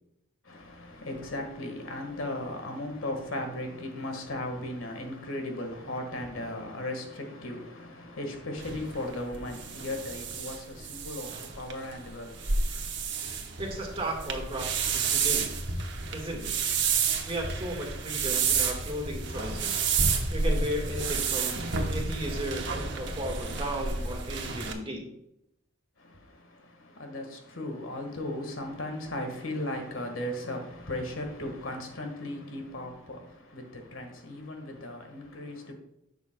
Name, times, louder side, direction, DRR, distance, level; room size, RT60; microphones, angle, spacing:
voice 1, 0.4-13.3 26.0-35.7, left 1 dB, 80° left, 1.6 m, -37 dB
sound 1, 8.6-24.7, right 5 dB, 60° right, 1.0 m, -30 dB
voice 2, 13.6-15.5 16.1-16.5 17.3-19.8 20.3-21.6 21.9-25.0, right 1 dB, 30° right, 1.6 m, -35 dB
10.5 x 7.0 x 2.2 m
head